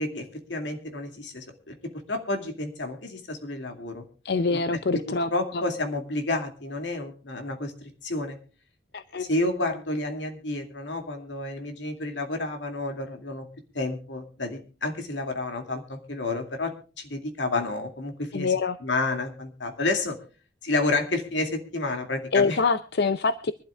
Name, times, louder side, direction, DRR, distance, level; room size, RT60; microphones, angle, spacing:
voice 1, 0.0-4.0 4.5-4.6 4.9-5.0 5.3-8.4 9.1-13.5 13.7-18.5 18.8-20.2 20.6-22.6, left 2 dB, 85° left, 5 dB, 2.3 m, -30 dB
voice 2, 4.2-5.6 8.9-9.3 18.3-18.8 22.3-23.5, left 4 dB, 60° left, 13 dB, 0.6 m, -25 dB
24.5 x 12.0 x 2.3 m, 0.36 s
head